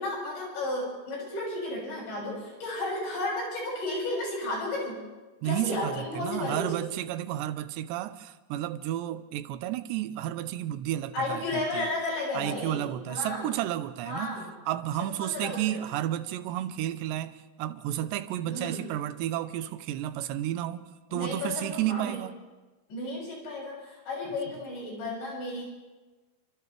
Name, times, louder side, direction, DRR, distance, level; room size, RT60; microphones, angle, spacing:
voice 1, 0.0-5.0 5.4-6.8 11.1-13.5 14.1-14.5 15.0-15.8 18.5-18.9 21.1-22.2 22.9-25.6, left 2 dB, 90° left, 9.1 m, -33 dB
voice 2, 5.4-11.9 12.3-14.4 14.7-22.4, right 13 dB, 90° right, 3.0 m, -32 dB
29.5 x 26.5 x 3.4 m
omnidirectional pair, 4.8 m